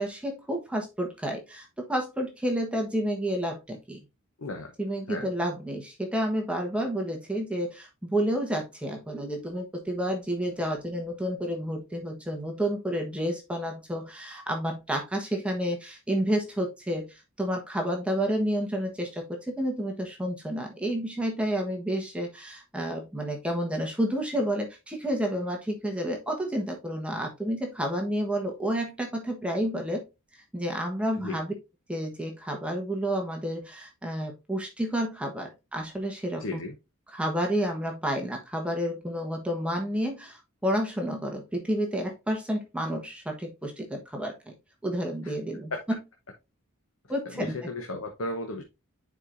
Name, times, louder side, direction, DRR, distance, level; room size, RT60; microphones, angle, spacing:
voice 1, 0.0-4.0 4.8-30.0 30.3-31.5 31.9-36.6 37.1-44.5 44.8-46.0 47.1-47.6, equal, 5° right, 1 dB, 1.2 m, -30 dB
voice 2, 4.4-4.7 5.1-5.3 31.2-31.4 36.4-36.7 45.7-45.8 47.3-48.6, left 2 dB, 65° left, 3 dB, 0.9 m, -34 dB
9.7 x 4.5 x 2.5 m, 0.24 s
head